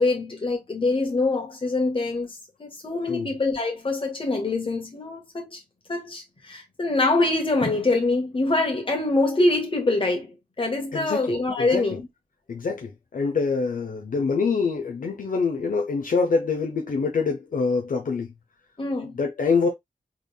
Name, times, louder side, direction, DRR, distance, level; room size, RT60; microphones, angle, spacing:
voice 1, 0.0-5.6 5.9-12.1 18.8-19.1, left 2 dB, 35° left, 1.6 m, -24 dB
voice 2, 10.9-11.3 11.6-11.8 12.5-18.3 19.2-19.7, left 4 dB, 65° left, 0.7 m, -25 dB
3.7 x 3.6 x 2.2 m
wide cardioid pair, 140°, 15 cm